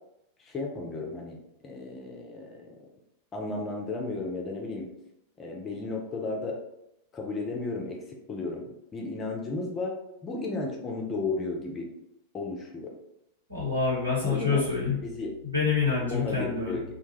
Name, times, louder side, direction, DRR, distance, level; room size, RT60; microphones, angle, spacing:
voice 1, 0.4-2.8 3.3-4.9 5.4-6.6 7.1-8.7 8.9-10.0 10.2-11.9 12.3-12.9 14.2-14.6 15.0-15.3 16.1-16.8, left 3 dB, 25° left, 0 dB, 0.5 m, -34 dB
voice 2, 13.5-15.0 15.4-16.8, left 5 dB, 85° right, -7 dB, 1.2 m, -26 dB
2.3 x 2.2 x 3.1 m, 0.81 s
figure-of-eight pair, 90°, 0 cm